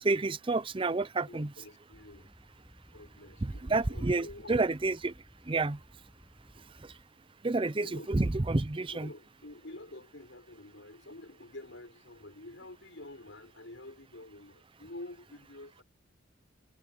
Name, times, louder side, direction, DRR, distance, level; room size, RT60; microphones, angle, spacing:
voice 1, 0.0-1.5 3.4-5.1 5.5-5.8 7.4-9.1, right 3 dB, 25° right, 0.6 m, -29 dB
voice 2, 1.3-2.3 2.9-4.7 7.8-8.1 8.9-15.8, left 2 dB, 70° left, 5.5 m, -48 dB
sound 1, 1.9-7.1, equal, 5° left, 8.0 m, -59 dB
head